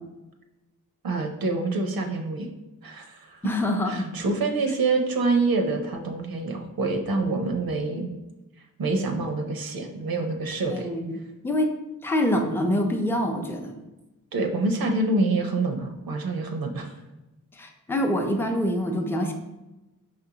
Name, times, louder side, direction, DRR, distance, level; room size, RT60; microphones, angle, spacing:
voice 1, 1.0-2.5 2.8-3.5 3.9-8.1 8.8-10.9 14.3-16.9, right 3 dB, 80° right, 4 dB, 0.6 m, -26 dB
voice 2, 3.4-4.1 10.7-11.7 12.0-13.8 17.5-19.3, left 1 dB, 5° left, 3 dB, 0.5 m, -25 dB
5.3 x 2.5 x 2.8 m, 1.0 s
cardioid pair, 50°, 35 cm